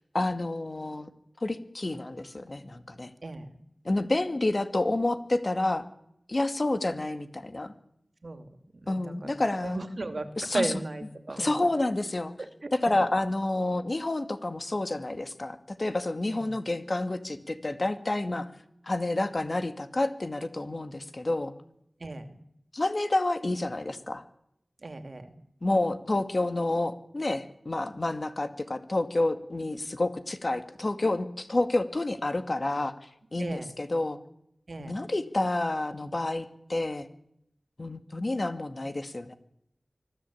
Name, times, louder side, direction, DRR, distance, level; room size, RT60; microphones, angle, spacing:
voice 1, 0.1-1.1 1.4-3.1 3.8-5.9 6.3-7.7 8.9-9.8 10.4-10.7 11.4-12.3 12.7-18.5 18.8-21.5 22.7-24.2 25.6-32.9 33.3-34.2 34.8-37.1 37.8-39.3, left 2 dB, 50° left, 9 dB, 2.1 m, -29 dB
voice 2, 3.2-3.6 8.2-8.5 8.8-11.7 12.6-12.7 16.3-16.6 22.0-22.4 24.8-25.4 33.4-33.7 34.7-35.0, right 2 dB, 70° right, 9 dB, 2.6 m, -36 dB
25.0 x 15.5 x 8.6 m, 0.75 s
wide cardioid pair, 65°, 0 cm